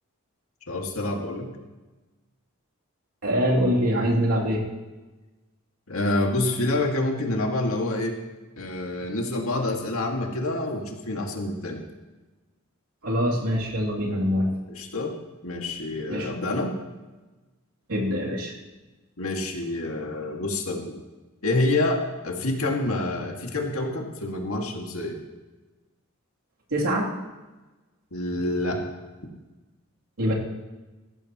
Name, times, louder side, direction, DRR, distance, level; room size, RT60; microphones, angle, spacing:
voice 1, 0.7-1.5 5.9-8.2 8.6-11.8 14.8-15.1 15.4-16.7 19.2-20.9 21.4-25.2 28.1-28.8, left 2 dB, 75° left, 1 dB, 2.1 m, -27 dB
voice 2, 3.2-4.6 13.0-14.6 16.1-16.3 17.9-18.5 26.7-27.1 30.2-30.3, equal, 90° right, -3 dB, 3.1 m, -24 dB
18.0 x 14.0 x 3.1 m, 1.2 s
head